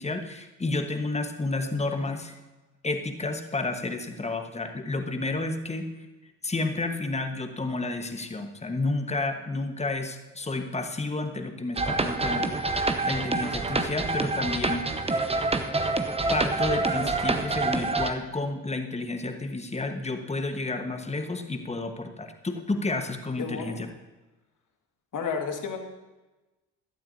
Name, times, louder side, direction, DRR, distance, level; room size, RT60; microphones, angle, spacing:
voice 1, 0.0-2.4 2.8-5.9 6.4-15.3 16.3-23.9, left 2 dB, 15° left, 6 dB, 1.4 m, -31 dB
sound 1, 11.8-18.1, right 3 dB, 15° right, 1.0 m, -27 dB
voice 2, 23.4-23.9 25.1-25.8, left 6 dB, 40° left, 4 dB, 2.0 m, -32 dB
17.0 x 12.0 x 2.8 m, 1.1 s
figure-of-eight pair, 50°, 47 cm